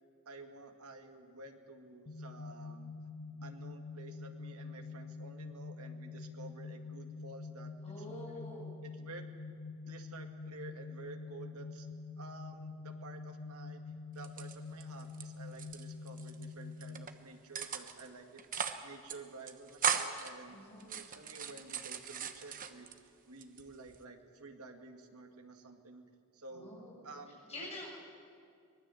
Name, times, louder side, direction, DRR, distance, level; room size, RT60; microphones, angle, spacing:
voice 1, 0.3-2.9 3.4-7.7 8.1-8.4 8.8-9.2 9.9-11.9 12.2-13.8 14.1-20.6 20.9-22.9 23.3-26.0 26.3-26.7 27.0-27.7, right 3 dB, 80° right, 4 dB, 2.1 m, -51 dB
sound 1, 2.1-17.1, left 4 dB, 65° left, 1.0 m, -46 dB
voice 2, 7.8-8.7 20.5-21.0 26.5-27.0 27.5-28.0, left 1 dB, 30° left, -3 dB, 7.6 m, -47 dB
sound 2, 14.2-15.2 15.5-16.4 16.8-17.1 17.5-18.1 18.4-18.8 19.1-19.2 19.5-20.3 20.8-23.0 23.4-24.0, right 7 dB, 35° right, 1.1 m, -37 dB
24.0 x 20.0 x 7.8 m, 2.3 s
head